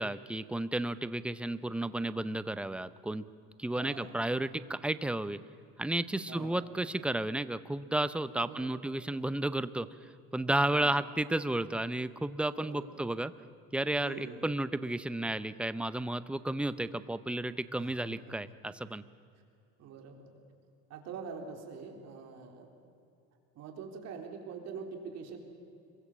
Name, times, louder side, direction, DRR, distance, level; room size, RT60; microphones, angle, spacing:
voice 1, 0.0-3.2 3.6-5.4 5.8-9.9 10.3-13.3 13.7-19.0, right 1 dB, 5° right, 14 dB, 0.6 m, -32 dB
voice 2, 3.7-4.2 6.3-6.6 8.5-8.9 10.7-11.0 12.5-13.0 14.0-14.5 17.7-18.4 19.8-20.3 20.9-22.7 23.6-25.4, right 5 dB, 50° right, 3 dB, 3.9 m, -45 dB
26.5 x 22.5 x 7.3 m, 2.6 s
cardioid pair, 140°, 34 cm